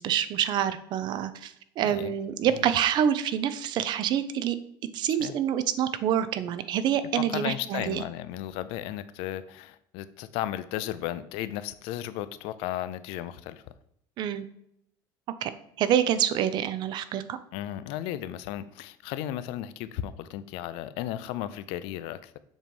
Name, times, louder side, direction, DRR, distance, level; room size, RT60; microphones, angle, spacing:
voice 1, 0.0-4.6 4.9-8.0 14.2-14.4 15.4-15.5 15.8-17.4, right 9 dB, 50° right, 13 dB, 0.5 m, -27 dB
voice 2, 7.2-13.6 17.5-22.4, left 12 dB, 70° left, 14 dB, 0.5 m, -35 dB
7.3 x 3.1 x 5.3 m, 0.75 s
cardioid pair, 135°, 10 cm